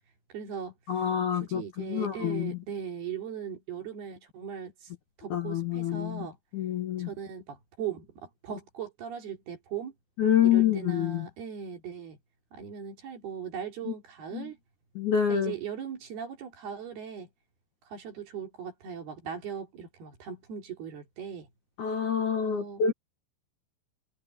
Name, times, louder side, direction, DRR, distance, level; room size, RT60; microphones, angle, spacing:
voice 1, 0.3-1.1 1.3-4.9 5.2-6.4 7.0-9.9 10.4-12.2 12.5-14.6 15.3-17.3 17.9-21.5 22.4-22.8, right 8 dB, 55° right, 5.1 m, -39 dB
voice 2, 0.9-2.5 5.3-6.3 6.5-7.1 10.2-11.3 14.3-14.5 15.0-15.5 21.8-22.9, left 9 dB, 75° left, 1.7 m, -27 dB
omnidirectional pair, 5.8 m